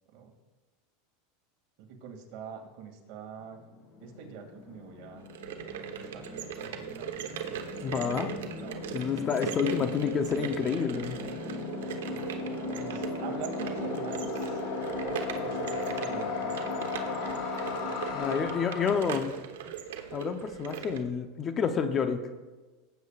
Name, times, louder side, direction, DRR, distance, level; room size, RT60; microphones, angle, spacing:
voice 1, 1.8-3.6 4.0-5.2 5.6-7.2 7.8-8.8 12.8-14.6 15.0-17.5, right 6 dB, 55° right, 2 dB, 2.3 m, -44 dB
sound 1, 3.5-3.6 3.7-19.0, left 3 dB, 50° left, 1.9 m, -36 dB
sound 2, 5.2-21.0, right 9 dB, 85° right, 1.1 m, -39 dB
voice 2, 7.8-8.4 8.9-11.2 18.1-19.3 19.7-19.8 20.1-22.2, left 6 dB, 30° left, 8 dB, 0.7 m, -29 dB
18.5 x 9.1 x 2.5 m, 1.2 s
supercardioid pair, 135°, 0 cm